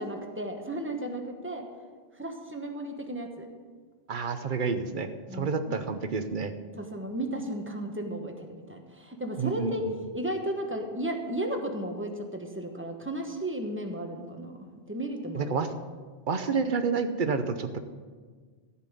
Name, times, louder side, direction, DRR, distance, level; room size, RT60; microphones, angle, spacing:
voice 1, 0.0-1.6 2.2-3.5 5.3-5.6 6.8-9.9 10.1-15.5, right 1 dB, 10° right, 3 dB, 1.2 m, -34 dB
voice 2, 4.1-6.5 9.4-9.7 15.3-15.7 16.3-17.8, right 5 dB, 55° right, 9 dB, 0.9 m, -29 dB
14.5 x 5.7 x 8.2 m, 1.5 s
omnidirectional pair, 1.1 m